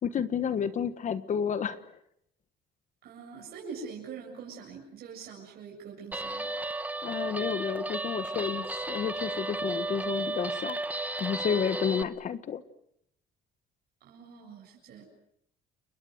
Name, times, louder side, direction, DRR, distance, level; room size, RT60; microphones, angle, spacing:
voice 1, 0.0-1.8 7.0-10.8 11.2-12.6, left 7 dB, 45° left, 12 dB, 1.4 m, -31 dB
voice 2, 3.0-6.5 14.0-15.0, right 5 dB, 65° right, -1 dB, 7.6 m, -44 dB
Guitar, 6.1-12.0, right 2 dB, 10° right, 1.5 m, -34 dB
30.0 x 22.5 x 7.9 m, 0.73 s
cardioid pair, 110°, 17 cm